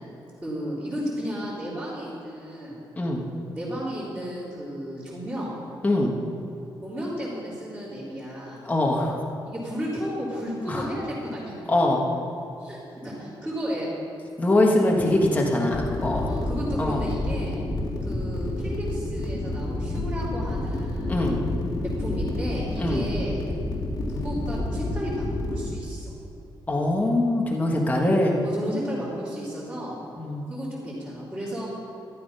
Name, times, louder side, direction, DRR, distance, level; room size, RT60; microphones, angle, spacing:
voice 1, 0.4-2.8 3.5-5.5 6.8-8.6 9.4-11.6 12.6-13.9 16.3-17.5 18.0-21.2 22.0-23.4 24.1-26.1 27.8-28.1 28.4-30.0 30.5-31.7, equal, 10° right, -11 dB, 3.4 m, -33 dB
voice 2, 5.8-6.1 8.6-9.2 10.7-10.9 11.7-12.1 14.4-16.3 16.8-17.0 21.1-21.4 22.8-23.0 26.7-28.4 30.2-30.5, left 1 dB, 15° left, -1 dB, 1.4 m, -23 dB
sound 1, 15.7-25.7, left 2 dB, 50° left, 2.0 m, -29 dB
12.5 x 12.5 x 5.6 m, 2.9 s
wide cardioid pair, 175°, 9 cm